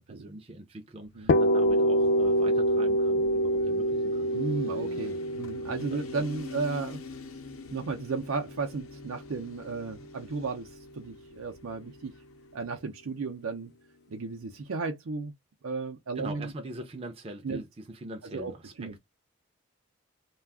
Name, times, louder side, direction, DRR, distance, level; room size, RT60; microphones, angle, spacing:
voice 1, 0.0-4.3 4.7-4.8 5.9-6.2 16.2-19.0, right 1 dB, 30° right, 0.4 m, -43 dB
Motorcycle, 1.0-12.7, left 4 dB, 85° left, 0.7 m, -48 dB
sound 1, 1.3-9.0, equal, 55° left, 0.4 m, -26 dB
voice 2, 4.3-7.0 7.7-12.1 12.5-13.7 14.1-15.3 15.6-16.5 17.4-17.6 18.3-18.5 18.8-19.0, right 4 dB, 85° right, 0.6 m, -34 dB
2.3 x 2.3 x 3.4 m
head